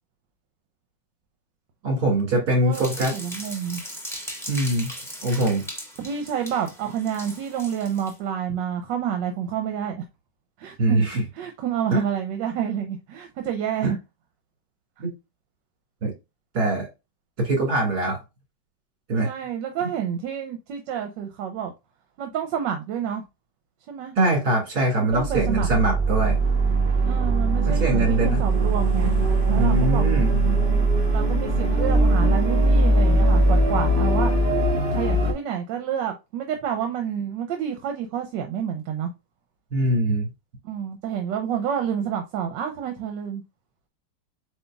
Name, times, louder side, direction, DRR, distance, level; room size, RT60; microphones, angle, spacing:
voice 1, 1.8-3.1 4.5-4.9 5.2-5.7 10.8-11.2 11.9-12.0 13.8-13.9 15.0-15.1 16.0-16.1 16.5-16.9 17.4-18.2 19.1-19.3 24.2-26.4 27.7-28.4 29.6-30.3 39.7-40.3, right 2 dB, 60° right, 2.6 m, -22 dB
sound 1, 2.7-8.1, equal, ahead, 0.8 m, -38 dB
voice 2, 3.1-3.8 6.0-10.0 10.6-11.0 11.3-14.0 19.2-21.7 22.2-23.2 23.9-24.1 25.0-25.7 27.0-29.1 29.5-30.5 31.1-34.3 34.9-39.1 40.6-43.4, right 8 dB, 80° right, 1.4 m, -29 dB
sound 2, 25.1-35.3, right 2 dB, 40° right, 0.9 m, -20 dB
7.7 x 2.6 x 2.3 m
omnidirectional pair, 1.9 m